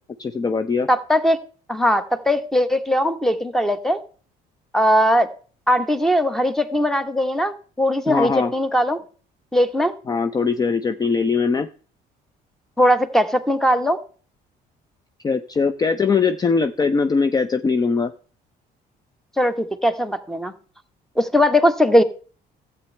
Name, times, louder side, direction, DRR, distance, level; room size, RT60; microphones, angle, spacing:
voice 1, 0.2-0.9 8.1-8.5 10.1-11.7 15.2-18.1, left 5 dB, 25° left, 11 dB, 0.5 m, -21 dB
voice 2, 0.9-1.4 1.7-4.0 4.7-5.3 5.7-9.0 9.5-9.9 12.8-14.0 19.4-20.5 21.2-22.0, equal, 5° left, 11 dB, 1.0 m, -19 dB
12.5 x 8.2 x 3.2 m, 0.39 s
cardioid pair, 110°, 17 cm